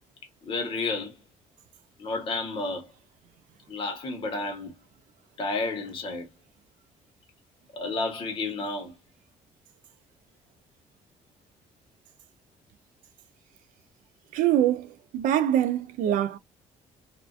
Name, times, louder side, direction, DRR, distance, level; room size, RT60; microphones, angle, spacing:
voice 1, 0.4-1.2 2.0-2.9 3.7-4.7 5.4-6.3 7.7-8.9 16.1-16.2, left 3 dB, 40° left, 1.0 m, -31 dB
voice 2, 14.3-16.4, right 11 dB, 85° right, 0.4 m, -24 dB
2.4 x 2.2 x 2.4 m
cardioid pair, 160°, 13 cm